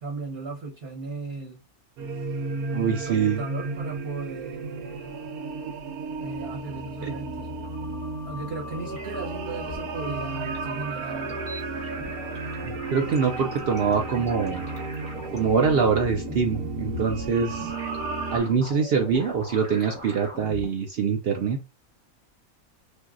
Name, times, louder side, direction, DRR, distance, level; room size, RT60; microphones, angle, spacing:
voice 1, 0.0-1.6 3.1-5.1 6.2-7.5 8.2-11.4, right 3 dB, 50° right, 1.1 m, -36 dB
sound 1, 2.0-18.4, right 3 dB, 90° right, 1.1 m, -34 dB
voice 2, 2.7-3.4 7.0-7.1 12.6-14.6 15.3-17.7 18.3-21.6, right 6 dB, 70° right, 0.5 m, -24 dB
sound 2, 7.4-20.7, left 1 dB, 5° left, 0.8 m, -41 dB
3.2 x 2.6 x 2.4 m
omnidirectional pair, 1.5 m